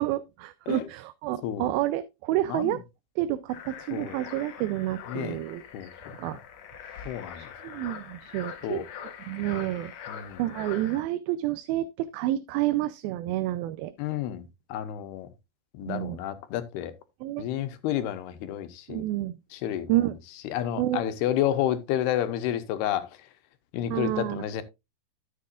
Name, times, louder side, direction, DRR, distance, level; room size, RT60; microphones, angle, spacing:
voice 1, 0.0-2.8 3.2-5.6 6.2-6.4 6.8-7.1 7.4-8.8 9.3-9.9 10.4-13.9 15.8-16.2 17.2-17.4 18.9-19.4 19.9-20.2 20.8-21.0 23.9-24.5, right 15 dB, 80° right, 2.3 m, -29 dB
voice 2, 2.5-2.8 3.9-4.2 5.1-5.4 5.7-5.9 7.1-7.5 8.6-8.8 10.1-10.4 14.0-15.3 15.7-16.9 17.4-19.0 19.5-20.0 20.4-23.2 23.7-24.6, left 11 dB, 85° left, 2.9 m, -30 dB
sound 1, 3.5-11.0, left 8 dB, 60° left, 1.8 m, -43 dB
13.0 x 7.7 x 2.4 m
omnidirectional pair, 4.5 m